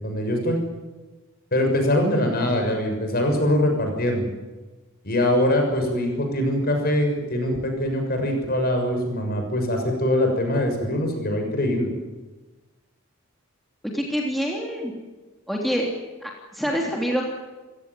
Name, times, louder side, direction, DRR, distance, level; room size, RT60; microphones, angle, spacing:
voice 1, 0.0-0.6 1.5-4.2 5.0-11.9, left 1 dB, 45° left, 3 dB, 6.6 m, -23 dB
voice 2, 13.8-14.9 15.5-15.9 16.2-17.2, equal, ahead, -1 dB, 3.2 m, -26 dB
28.5 x 16.5 x 9.8 m, 1.2 s
head